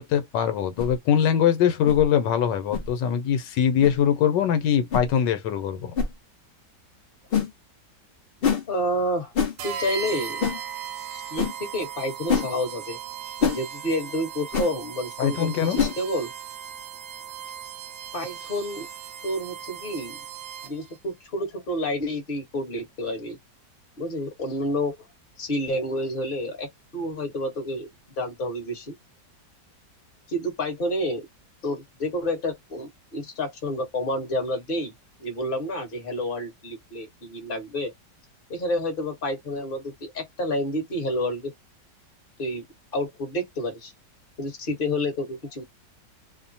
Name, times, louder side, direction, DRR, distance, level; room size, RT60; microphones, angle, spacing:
voice 1, 0.0-5.9 15.2-15.8, left 9 dB, 90° left, 1.3 m, -22 dB
sound 1, 0.8-0.9 1.8-2.0 2.7-2.9 3.8-3.9 4.9-5.1 5.9-6.1 7.3-7.5 8.4-8.6 9.3-9.5 10.4-10.6 11.4-11.5 12.3-12.5 13.4-13.6 14.5-14.7 15.7-16.0, left 6 dB, 60° left, 0.6 m, -24 dB
voice 2, 8.7-9.3 9.6-10.6 11.1-13.0 13.5-16.3 18.1-18.9 19.2-20.2 20.6-23.4 24.0-25.0 25.4-26.7 26.9-27.9 28.2-28.9 30.3-31.3 31.6-34.9 35.2-37.9 38.5-41.5 42.4-42.6 42.9-43.9 44.4-45.6, left 1 dB, 35° left, 1.2 m, -29 dB
sound 2, 9.6-21.0, right 8 dB, 85° right, 1.3 m, -37 dB
3.1 x 2.1 x 2.6 m
omnidirectional pair, 1.9 m